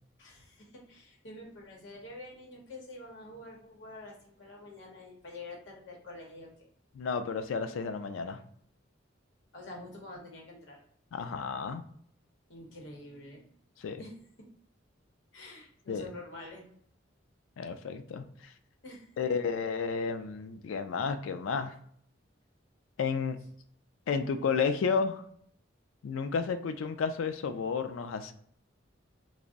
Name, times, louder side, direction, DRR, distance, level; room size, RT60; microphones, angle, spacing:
voice 1, 0.2-6.7 9.5-10.8 12.5-13.4 14.0-14.5 15.3-16.6 18.8-19.4, left 2 dB, 65° left, -1 dB, 0.9 m, -47 dB
voice 2, 7.0-8.4 11.1-11.8 13.8-14.0 15.9-16.0 17.6-18.5 19.2-21.7 23.0-23.4 24.1-25.2 26.0-28.3, left 5 dB, 80° left, 8 dB, 0.3 m, -32 dB
2.5 x 2.0 x 3.6 m, 0.64 s
head